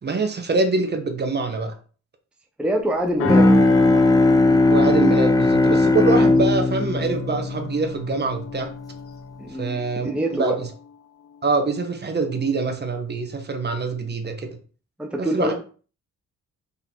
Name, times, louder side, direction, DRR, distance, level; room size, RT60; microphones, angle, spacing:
voice 1, 0.0-1.7 4.5-8.7 9.6-10.7 11.4-14.6 15.2-15.5, right 3 dB, 35° right, 5 dB, 1.3 m, -24 dB
voice 2, 2.6-3.5 9.4-10.6 15.0-15.5, right 1 dB, 5° right, 1 dB, 1.0 m, -25 dB
sound 1, 3.2-12.0 12.5-12.7, left 6 dB, 50° left, 0.6 m, -35 dB
Bowed string instrument, 3.2-8.7, left 2 dB, 10° left, 0.6 m, -18 dB
5.5 x 3.9 x 4.5 m, 0.39 s
cardioid pair, 90°, 30 cm